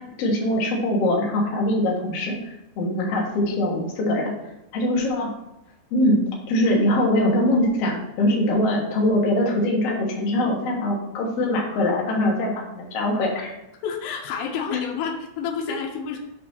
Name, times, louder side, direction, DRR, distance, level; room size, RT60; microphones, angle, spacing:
voice 1, 0.0-4.3 4.7-5.3 5.9-6.2 6.5-13.5, left 1 dB, 55° left, -2 dB, 1.7 m, -22 dB
voice 2, 13.8-16.2, left 6 dB, 85° left, 1 dB, 3.0 m, -29 dB
8.5 x 3.1 x 5.7 m, 0.89 s
omnidirectional pair, 5.0 m